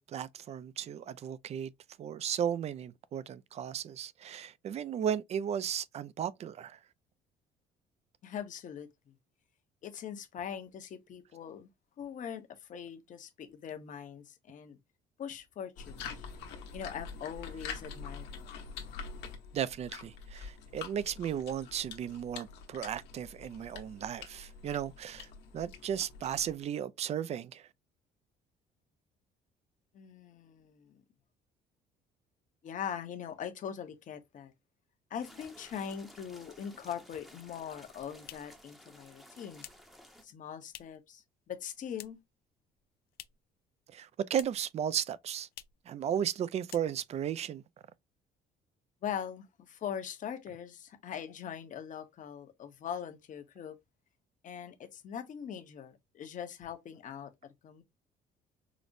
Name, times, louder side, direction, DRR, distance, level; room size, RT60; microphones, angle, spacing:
voice 1, 0.0-1.7 2.0-6.8 19.5-25.3 25.5-27.7 43.9-45.5 45.9-47.6, right 9 dB, 40° right, 0.3 m, -35 dB
voice 2, 8.2-9.1 9.8-11.7 12.0-14.8 15.2-16.3 16.7-18.5 29.9-31.0 32.6-34.5 35.1-39.6 40.2-42.2 49.0-53.8 54.4-57.3 57.6-57.8, left 8 dB, 50° left, 0.8 m, -42 dB
sound 1, 15.8-26.6, left 5 dB, 90° left, 1.1 m, -46 dB
sound 2, 35.2-40.2, equal, ahead, 0.7 m, -55 dB
sound 3, 38.3-41.1 41.4-42.4 42.7-43.6 43.9-44.8 45.0-45.1 45.5-45.9 46.2-46.4 46.6-47.3, left 13 dB, 65° left, 0.4 m, -52 dB
4.9 x 2.0 x 2.5 m
cardioid pair, 110°, 17 cm